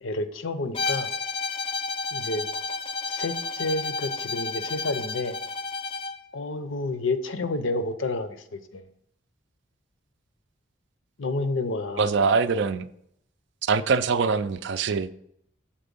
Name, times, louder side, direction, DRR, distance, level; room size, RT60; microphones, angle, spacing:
voice 1, 0.0-1.1 2.1-2.5 3.1-5.4 6.3-8.9 11.2-12.1, left 2 dB, 70° left, 0.6 m, -30 dB
Bowed string instrument, 0.7-6.2, left 4 dB, 25° left, 0.3 m, -31 dB
voice 2, 12.0-12.9 13.6-15.1, right 5 dB, 60° right, 0.4 m, -23 dB
7.3 x 4.3 x 5.3 m
head